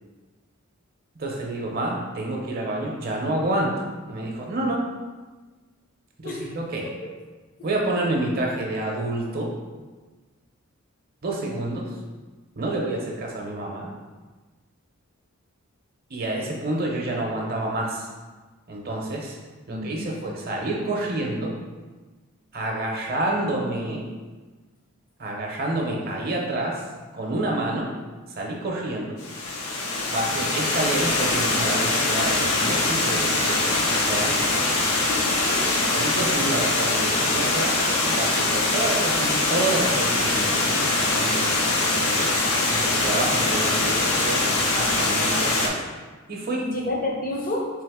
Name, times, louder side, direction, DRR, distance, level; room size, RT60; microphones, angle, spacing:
voice 1, 1.2-3.8 4.1-4.8 6.2-6.9 7.6-9.5 11.2-11.8 12.6-13.9 16.1-18.1 18.7-19.4 19.7-21.5 22.5-24.1 25.2-26.8 27.1-27.9 28.4-29.2 30.1-34.3 35.9-37.8 38.2-42.3 42.7-45.8 46.3-46.6, right 2 dB, 45° right, -1 dB, 0.7 m, -28 dB
voice 2, 19.7-20.0 35.1-35.7 46.6-47.7, left 2 dB, 40° left, -1 dB, 0.7 m, -30 dB
Water, 29.2-45.7, left 2 dB, 90° left, 0.7 m, -23 dB
3.6 x 3.4 x 3.5 m, 1.3 s
head